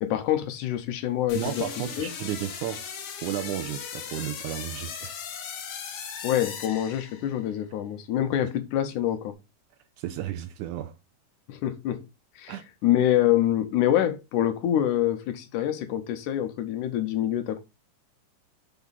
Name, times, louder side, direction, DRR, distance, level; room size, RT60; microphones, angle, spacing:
voice 1, 0.0-1.6 2.0-2.1 6.2-9.3 11.5-12.1 12.4-12.6 12.8-17.6, left 11 dB, 75° left, 2.2 m, -26 dB
sound 1, 1.3-7.5, left 7 dB, 60° left, 1.7 m, -38 dB
voice 2, 1.3-2.9 3.2-5.1 10.0-10.9 12.5-12.7, right 12 dB, 80° right, 1.9 m, -33 dB
6.0 x 4.9 x 4.0 m
omnidirectional pair, 3.8 m